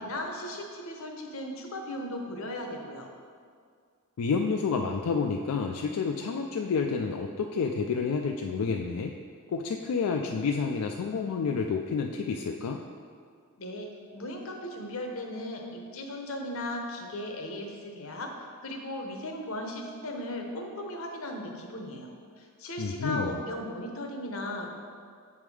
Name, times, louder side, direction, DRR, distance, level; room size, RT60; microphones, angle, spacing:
voice 1, 0.0-3.1 13.6-18.3 18.6-22.1 22.4-24.7, left 1 dB, 65° left, 2 dB, 0.8 m, -37 dB
voice 2, 4.2-9.1 9.5-12.8 22.8-23.4, left 5 dB, 85° left, 3 dB, 0.4 m, -29 dB
7.6 x 3.6 x 4.7 m, 2.1 s
head